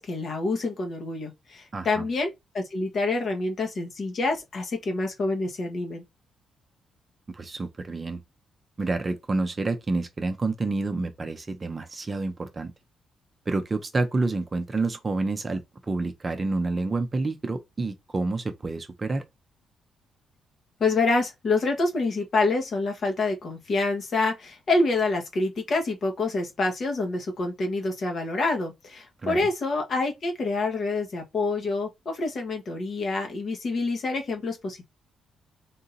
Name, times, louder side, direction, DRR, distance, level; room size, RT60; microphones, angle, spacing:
voice 1, 0.0-6.0 20.8-34.9, left 3 dB, 45° left, 1.3 m, -27 dB
voice 2, 1.7-2.1 7.3-8.2 8.8-12.7 13.5-15.6 15.9-19.2 29.2-29.4, right 3 dB, 25° right, 0.6 m, -28 dB
3.7 x 2.8 x 3.9 m
cardioid pair, 135°, 0 cm